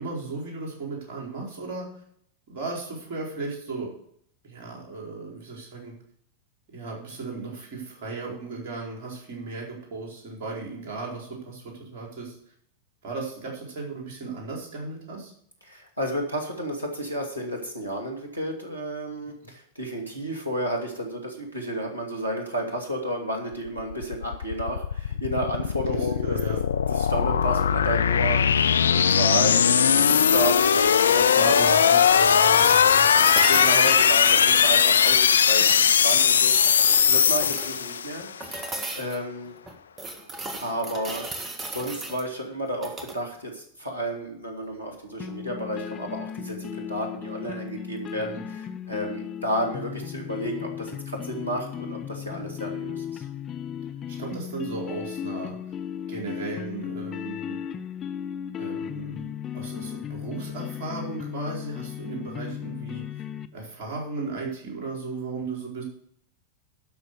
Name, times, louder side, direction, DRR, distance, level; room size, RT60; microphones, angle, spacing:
voice 1, 0.0-1.9 2.5-3.9 4.4-5.9 6.7-12.4 13.0-15.3 26.2-26.6 31.3-33.3 48.1-48.4 54.1-55.5 56.1-57.6 58.6-59.3 59.5-63.2 63.5-65.8, right 3 dB, 50° right, -1 dB, 4.5 m, -35 dB
voice 2, 15.6-26.6 26.9-32.1 33.5-38.3 39.0-39.5 40.6-53.2, equal, 90° left, 1 dB, 2.4 m, -32 dB
sound 1, 23.7-38.3, left 7 dB, 70° left, 0.3 m, -20 dB
sound 2, 32.3-35.2 35.5-37.8 38.4-39.2 39.7-42.2 42.7-43.2 45.2-45.3, right 2 dB, 20° right, 1.7 m, -35 dB
sound 3, 45.2-63.5, left 9 dB, 25° left, 0.6 m, -36 dB
12.0 x 6.2 x 6.7 m, 0.65 s
figure-of-eight pair, 90°, 0 cm